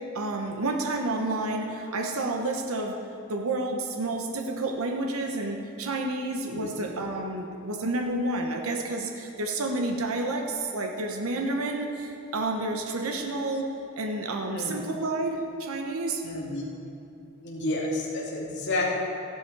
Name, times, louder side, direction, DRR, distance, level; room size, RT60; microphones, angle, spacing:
voice 1, 0.1-3.0 3.3-16.2, right 2 dB, 75° right, 3 dB, 0.9 m, -30 dB
voice 2, 16.2-16.6 17.4-18.9, left 2 dB, 55° left, -4 dB, 2.4 m, -30 dB
14.5 x 11.5 x 4.6 m, 2.8 s
head